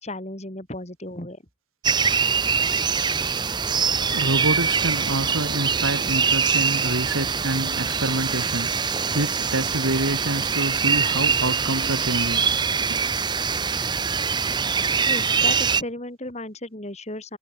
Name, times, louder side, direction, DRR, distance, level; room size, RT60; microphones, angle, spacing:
voice 1, 0.0-1.4 15.1-17.4, left 1 dB, 35° left, 4.3 m, -34 dB
sound 1, 1.8-15.8, right 6 dB, 20° right, 0.7 m, -23 dB
voice 2, 4.1-12.5 12.9-13.0, right 2 dB, 90° right, 2.5 m, -27 dB
head